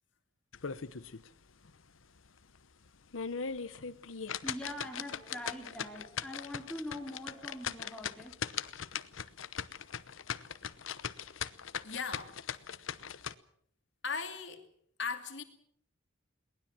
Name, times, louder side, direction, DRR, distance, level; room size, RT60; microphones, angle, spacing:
sound 1, 0.5-1.3 1.7-1.8 2.3-2.4 2.9-13.3, left 7 dB, 85° left, 0.9 m, -39 dB
voice 1, 4.2-8.3, left 1 dB, 5° left, 1 dB, 3.0 m, -43 dB
voice 2, 11.8-12.4 14.0-14.7 15.0-15.4, left 5 dB, 70° left, 6 dB, 2.6 m, -37 dB
22.0 x 19.0 x 7.5 m, 0.66 s
head